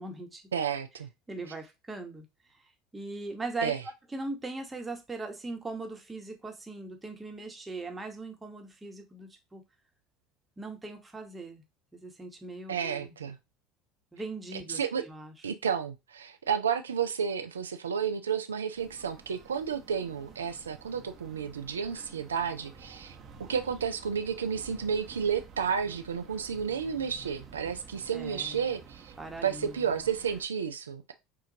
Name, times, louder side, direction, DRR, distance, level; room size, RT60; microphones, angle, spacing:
voice 1, 0.0-0.4 1.3-2.2 2.9-3.7 4.1-9.6 10.6-11.6 11.9-13.1 14.1-15.3 28.1-28.6 29.2-29.8, right 3 dB, 15° right, 1.2 m, -39 dB
voice 2, 0.5-1.1 1.5-1.6 3.6-3.8 12.7-13.4 14.5-15.0 15.4-23.2 23.5-29.1 29.4-31.1, right 7 dB, 80° right, 0.4 m, -31 dB
sound 1, 18.8-30.5, right 5 dB, 45° right, 0.9 m, -51 dB
5.9 x 2.5 x 2.8 m
figure-of-eight pair, 70°, 0 cm